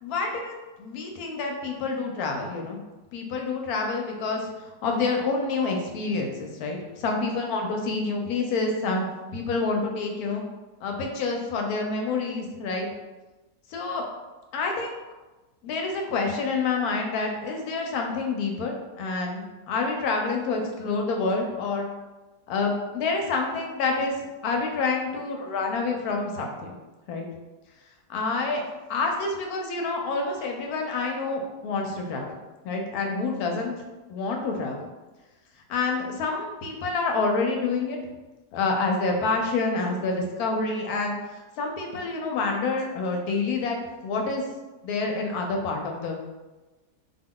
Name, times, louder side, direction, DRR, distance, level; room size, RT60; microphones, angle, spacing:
voice 1, 0.0-0.5 0.8-2.8 3.1-9.1 9.3-10.4 10.8-12.9 13.7-14.0 14.5-15.0 15.6-21.9 22.5-24.2 24.4-26.7 27.1-27.3 28.1-28.6 28.9-32.4 32.6-33.7 34.1-34.8 35.7-38.0 38.5-43.8 44.0-44.4 44.8-46.2, left 3 dB, 75° left, 2 dB, 1.0 m, -28 dB
2.5 x 2.2 x 3.6 m, 1.1 s
omnidirectional pair, 1.7 m